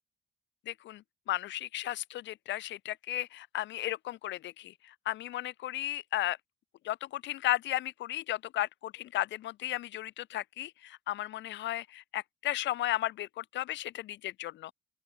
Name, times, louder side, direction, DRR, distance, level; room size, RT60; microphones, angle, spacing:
voice 1, 0.7-6.4 6.8-14.7, left 14 dB, 75° left, 2.0 m, -35 dB
open air
cardioid pair, 95°, 19 cm